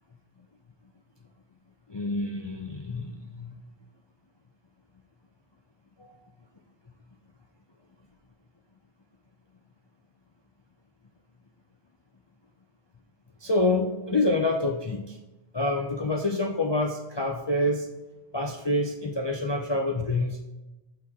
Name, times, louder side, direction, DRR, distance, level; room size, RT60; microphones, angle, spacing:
voice 1, 1.9-3.6 6.0-6.1 13.4-15.2 15.5-17.9 18.3-20.4, left 2 dB, 35° left, 2 dB, 0.4 m, -27 dB
7.9 x 6.3 x 3.6 m, 1.1 s
omnidirectional pair, 1.2 m